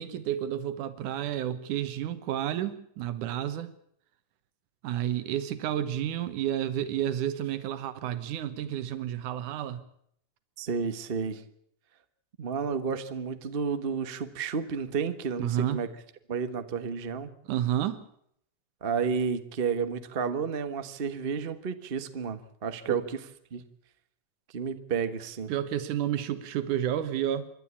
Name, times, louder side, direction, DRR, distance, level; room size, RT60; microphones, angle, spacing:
voice 1, 0.0-3.7 4.8-9.8 15.4-15.8 17.5-18.0 22.9-23.0 25.5-27.5, right 11 dB, 90° right, 11 dB, 2.7 m, -30 dB
voice 2, 10.6-11.4 12.4-15.9 16.3-17.3 18.8-23.2 23.5-23.6 24.5-25.5, right 6 dB, 70° right, 10 dB, 0.5 m, -31 dB
27.0 x 12.0 x 8.6 m, 0.68 s
omnidirectional pair, 3.4 m